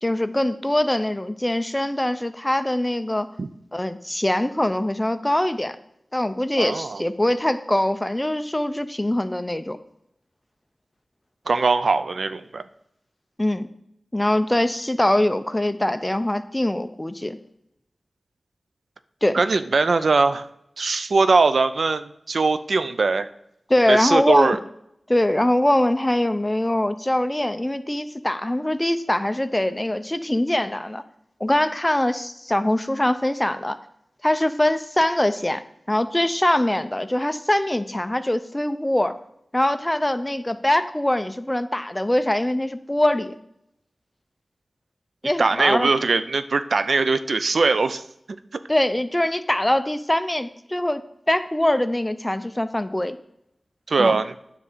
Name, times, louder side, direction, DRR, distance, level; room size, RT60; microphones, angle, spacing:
voice 1, 0.0-3.3 3.7-5.8 6.1-9.8 13.4-13.7 14.1-17.4 19.2-19.4 23.7-24.6 25.1-31.0 31.4-33.8 34.2-35.6 35.9-39.2 39.5-43.4 45.2-45.9 48.7-51.0 51.3-53.2 54.0-54.2, left 1 dB, 20° left, 11 dB, 0.6 m, -23 dB
voice 2, 6.6-7.0 11.5-12.6 19.3-20.5 20.8-23.3 23.9-24.6 45.4-48.0 53.9-54.3, right 4 dB, 85° right, 12 dB, 0.4 m, -21 dB
9.6 x 3.7 x 6.7 m, 0.77 s
wide cardioid pair, 65°, 0 cm